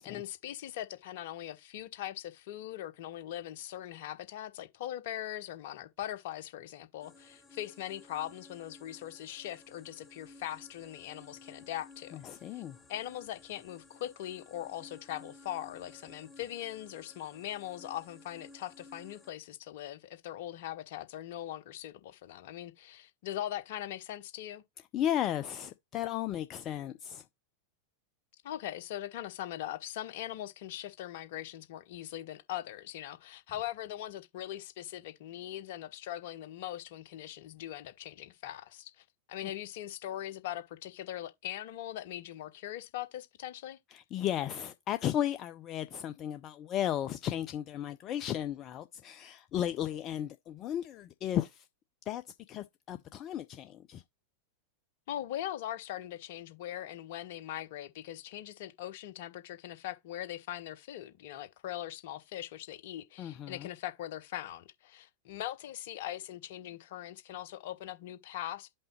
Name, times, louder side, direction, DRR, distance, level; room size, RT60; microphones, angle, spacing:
voice 1, 0.0-12.2 12.5-12.6 12.9-24.6 28.4-43.8 55.1-68.7, left 12 dB, 50° left, 0.8 m, -41 dB
sound 1, 7.0-19.3, left 3 dB, 10° left, 1.1 m, -56 dB
voice 2, 12.1-12.8 24.9-27.2 43.9-51.7 52.1-54.0 63.2-63.7, left 11 dB, 35° left, 0.4 m, -35 dB
5.4 x 3.8 x 5.7 m
figure-of-eight pair, 90°, 0 cm